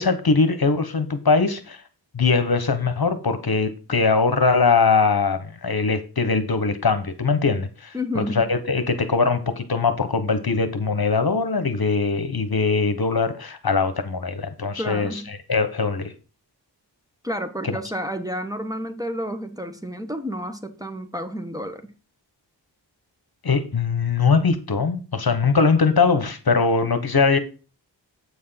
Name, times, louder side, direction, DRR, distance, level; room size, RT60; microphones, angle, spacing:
voice 1, 0.0-1.8 2.1-15.1 15.5-16.1 23.4-27.4, left 4 dB, 55° left, 1.2 m, -21 dB
voice 2, 7.9-8.5 14.8-15.3 17.2-21.9, equal, 10° right, 1.1 m, -30 dB
8.4 x 4.7 x 5.7 m
wide cardioid pair, 55°, 44 cm